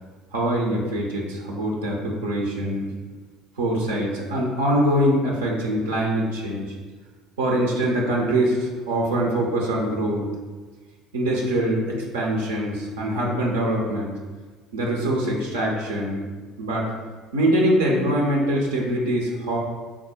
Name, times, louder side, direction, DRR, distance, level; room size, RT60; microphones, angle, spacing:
voice 1, 0.3-2.9 3.6-6.8 7.4-10.3 11.1-14.1 14.7-16.3 16.6-16.9 17.3-19.6, right 1 dB, 75° right, -2 dB, 0.6 m, -23 dB
3.5 x 2.1 x 4.2 m, 1.4 s
figure-of-eight pair, 60°, 0 cm